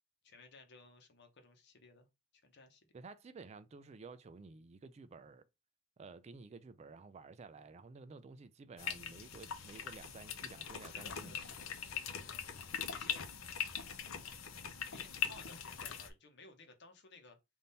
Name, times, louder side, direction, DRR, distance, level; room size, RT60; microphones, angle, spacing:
voice 1, 0.2-2.1 2.3-2.9 10.8-13.3 13.9-17.4, left 3 dB, 55° left, 0.9 m, -59 dB
voice 2, 2.9-5.4 6.0-11.4, right 4 dB, 30° right, 0.3 m, -53 dB
sound 1, 8.8-16.1, left 7 dB, 90° left, 0.6 m, -42 dB
3.6 x 2.6 x 4.0 m
head